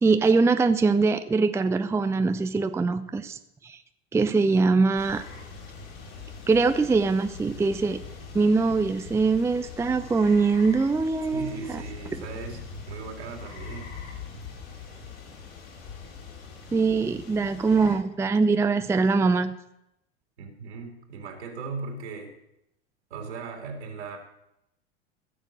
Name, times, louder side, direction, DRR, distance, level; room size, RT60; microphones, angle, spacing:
voice 1, 0.0-3.8 4.1-5.2 6.5-8.0 8.3-11.8 16.7-19.5, right 4 dB, 10° right, 10 dB, 0.6 m, -23 dB
sound 1, 5.0-18.0, left 5 dB, 55° left, 4.4 m, -42 dB
voice 2, 11.3-14.0 20.4-22.3 23.1-24.2, right 4 dB, 70° right, 2 dB, 3.2 m, -38 dB
15.0 x 7.0 x 7.6 m, 0.82 s
figure-of-eight pair, 85°, 34 cm